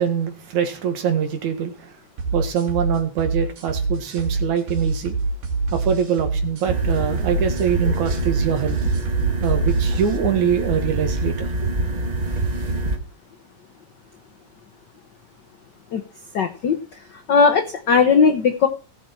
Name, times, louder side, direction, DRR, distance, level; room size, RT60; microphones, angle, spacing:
voice 1, 0.0-1.9 2.3-5.2 5.7-8.8 9.4-11.5, right 8 dB, 85° right, 3.1 m, -23 dB
sound 1, 2.2-10.2, right 3 dB, 65° right, 3.5 m, -25 dB
sound 2, 6.6-13.0, right 2 dB, 20° right, 1.0 m, -25 dB
voice 2, 16.3-16.8 17.3-18.7, left 5 dB, 80° left, 0.9 m, -17 dB
18.0 x 7.4 x 4.5 m
omnidirectional pair, 3.3 m